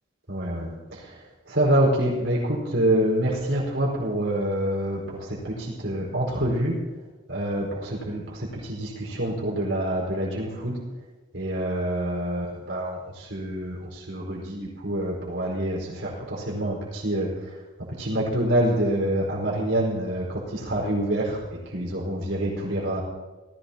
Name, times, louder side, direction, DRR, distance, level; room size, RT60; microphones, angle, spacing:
voice 1, 0.3-1.2 1.5-6.8 7.3-10.8 11.3-17.3 18.0-23.0, right 1 dB, 65° right, -4 dB, 4.6 m, -26 dB
18.5 x 16.0 x 2.9 m, 1.2 s
head